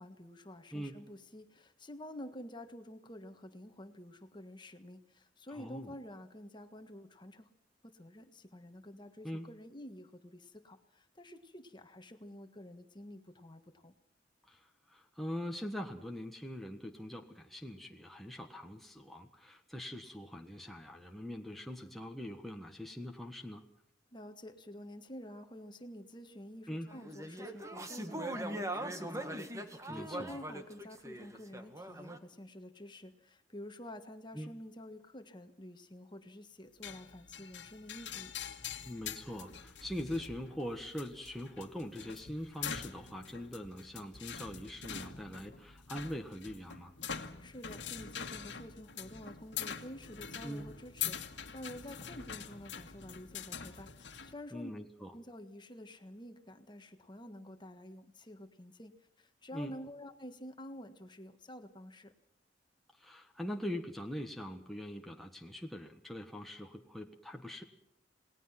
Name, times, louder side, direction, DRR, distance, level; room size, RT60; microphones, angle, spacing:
voice 1, 0.0-7.5 7.8-13.9 24.1-38.3 47.4-54.7 55.1-62.1, left 1 dB, 25° left, 7 dB, 1.6 m, -49 dB
voice 2, 5.5-5.9 9.2-9.5 14.5-23.6 26.7-26.9 29.9-30.3 34.3-34.5 38.8-46.9 50.4-50.7 54.5-55.1 59.5-59.8 63.0-67.6, equal, ahead, 1 dB, 1.4 m, -42 dB
sound 1, 26.9-32.2, right 1 dB, 15° right, 1.7 m, -41 dB
sound 2, 36.8-54.3, left 8 dB, 75° left, 1.7 m, -44 dB
28.5 x 19.5 x 5.9 m, 0.69 s
head